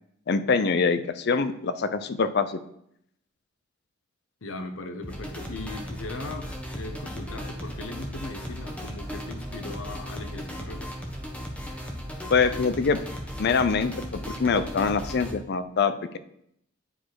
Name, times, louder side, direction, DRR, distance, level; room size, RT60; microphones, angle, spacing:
voice 1, 0.3-2.6 12.3-13.0 13.4-16.2, left 5 dB, 55° left, 12 dB, 0.5 m, -24 dB
voice 2, 4.4-10.9, left 2 dB, 85° left, 7 dB, 0.8 m, -38 dB
sound 1, 5.0-15.3, equal, 5° left, 1.2 m, -36 dB
10.0 x 4.1 x 4.8 m, 0.74 s
head